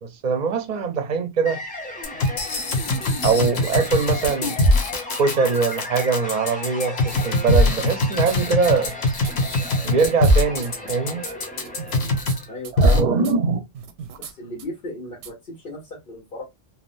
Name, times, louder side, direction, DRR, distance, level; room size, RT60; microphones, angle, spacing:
voice 1, 0.0-1.6 3.2-4.6 5.2-8.9 9.8-11.3 12.8-13.6, right 5 dB, 50° right, 0.6 m, -22 dB
sound 1, 1.5-12.6, left 2 dB, 10° left, 0.5 m, -35 dB
sound 2, 2.0-12.4 12.8-13.0, left 1 dB, 80° left, 1.1 m, -21 dB
sound 3, 7.8-8.4 8.6-10.3 10.6-10.9 11.3-11.4 11.6-12.4 12.6-12.9 13.2-13.3 13.7-14.3 14.6-14.7 15.2-15.3, right 6 dB, 90° right, 0.8 m, -37 dB
voice 2, 12.5-13.2 14.2-16.4, left 1 dB, 60° left, 1.3 m, -35 dB
3.4 x 2.1 x 2.5 m
omnidirectional pair, 1.1 m